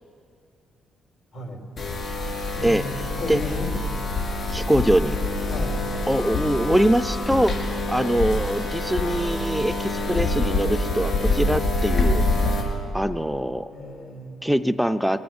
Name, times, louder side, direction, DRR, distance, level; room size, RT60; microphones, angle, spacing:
neon hypnotizing, 1.8-12.6, left 2 dB, 50° left, 5.1 m, -26 dB
voice 1, 2.5-3.7 5.5-5.8 13.7-14.4, left 2 dB, 70° left, 1 dB, 3.5 m, -34 dB
voice 2, 4.5-5.2 6.1-12.2 12.9-13.7 14.4-15.2, right 1 dB, ahead, 9 dB, 0.4 m, -23 dB
22.0 x 9.3 x 7.1 m, 2.7 s
cardioid pair, 70°, 0 cm